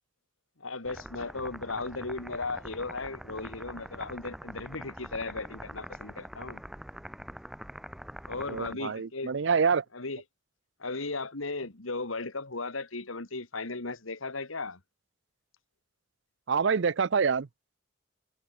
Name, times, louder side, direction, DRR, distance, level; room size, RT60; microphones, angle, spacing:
voice 1, 0.6-6.6 8.3-9.3 9.9-10.2 10.8-14.8, left 3 dB, 90° left, 2.4 m, -36 dB
sound 1, 0.8-8.7, equal, ahead, 0.7 m, -44 dB
voice 2, 8.5-9.8 16.5-17.5, right 5 dB, 60° right, 0.5 m, -26 dB
head